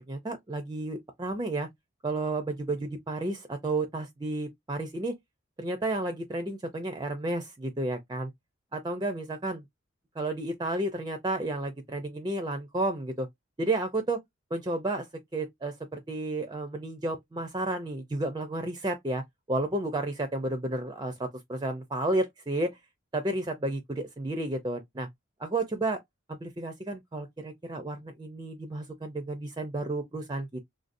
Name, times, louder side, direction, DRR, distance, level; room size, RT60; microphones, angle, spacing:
voice 1, 0.1-1.7 2.0-5.2 5.6-8.3 8.7-9.6 10.2-13.3 13.6-14.2 14.5-15.1 15.3-22.8 23.1-25.1 25.4-26.0 26.3-30.6, right 2 dB, 20° right, 0.4 m, -32 dB
3.5 x 2.6 x 2.5 m
head